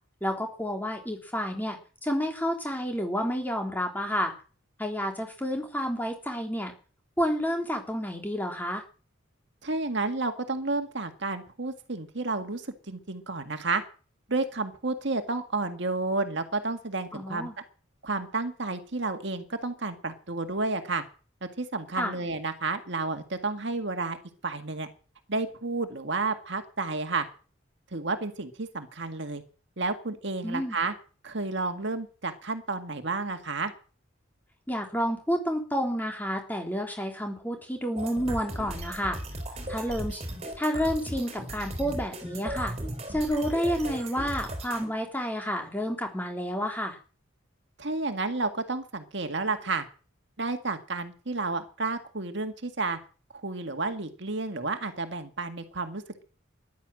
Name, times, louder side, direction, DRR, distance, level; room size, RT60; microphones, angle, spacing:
voice 1, 0.2-4.3 4.8-6.7 7.2-8.8 17.1-17.5 22.0-22.1 30.4-30.8 34.7-39.2 39.7-40.2 40.6-42.7 43.1-47.0, equal, 10° left, 3 dB, 3.3 m, -30 dB
voice 2, 9.6-13.8 14.3-17.5 18.0-21.0 21.6-24.2 24.4-24.9 25.3-27.3 27.9-29.4 29.8-30.9 31.2-33.7 47.8-49.9 50.4-53.0 53.4-56.2, right 3 dB, 60° right, 7 dB, 1.9 m, -31 dB
sound 1, 38.0-44.9, right 1 dB, 30° right, 4.0 m, -37 dB
14.0 x 11.5 x 7.6 m, 0.38 s
head